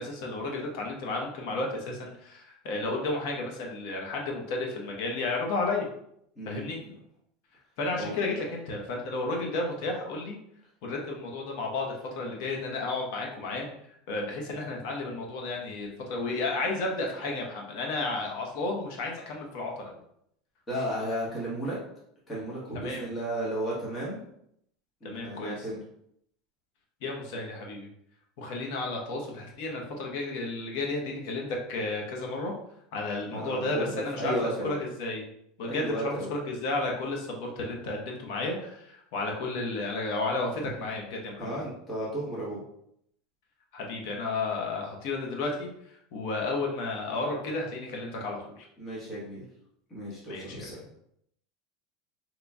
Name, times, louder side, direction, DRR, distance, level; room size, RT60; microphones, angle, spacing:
voice 1, 0.0-5.9 6.5-6.8 7.8-10.4 10.8-13.7 14.1-19.9 22.7-23.1 25.0-25.7 27.0-27.9 28.4-32.5 32.9-34.4 34.6-35.3 35.6-41.5 43.7-48.6 50.3-51.0, left 2 dB, 60° left, 0 dB, 0.9 m, -32 dB
voice 2, 6.4-6.9 8.0-8.1 20.7-21.8 22.3-24.2 25.0-25.8 33.3-34.8 35.6-36.3 41.4-42.6 48.8-49.4 49.9-50.8, right 1 dB, 20° left, -7 dB, 1.1 m, -34 dB
3.9 x 2.9 x 2.3 m, 0.73 s
supercardioid pair, 165°, 0 cm